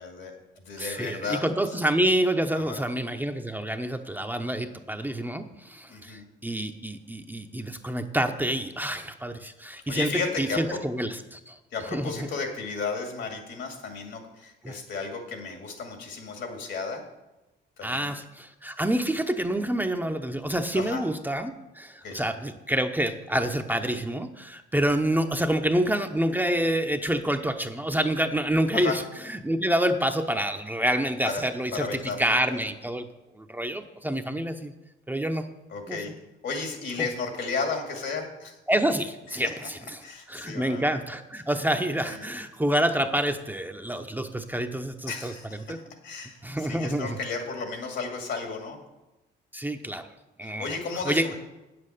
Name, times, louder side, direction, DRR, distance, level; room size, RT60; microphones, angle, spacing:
voice 1, 0.0-1.4 2.5-2.8 5.9-6.3 9.9-10.8 11.7-17.0 17.8-18.1 20.7-21.0 22.0-22.2 28.7-28.9 31.2-31.4 31.7-32.4 35.7-36.1 36.4-38.6 39.3-39.4 40.0-40.8 42.0-42.2 45.1-45.7 46.0-48.8 50.4-51.4, left 4 dB, 70° left, 3 dB, 2.4 m, -33 dB
voice 2, 0.8-11.6 11.9-12.1 14.6-14.8 17.8-33.1 33.4-34.7 35.1-35.5 35.9-36.0 37.0-37.1 38.7-40.0 40.3-45.3 45.7-45.8 46.4-47.2 49.5-50.1 50.4-50.8 51.0-51.3, right 1 dB, 10° right, 5 dB, 0.7 m, -27 dB
8.8 x 7.7 x 6.6 m, 1.0 s
cardioid pair, 90°, 20 cm